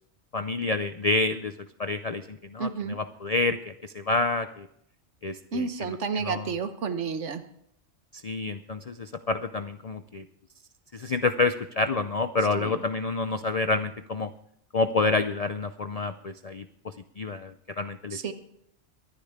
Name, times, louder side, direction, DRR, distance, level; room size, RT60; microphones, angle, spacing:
voice 1, 0.3-1.5 1.8-4.7 5.2-6.5 8.1-10.2 10.9-14.3 14.7-18.2, left 3 dB, 45° left, 10 dB, 0.5 m, -28 dB
voice 2, 2.6-3.0 5.5-7.4 12.6-12.9 18.1-18.3, right 5 dB, 90° right, 9 dB, 1.4 m, -31 dB
23.0 x 10.5 x 3.6 m, 0.72 s
omnidirectional pair, 1.2 m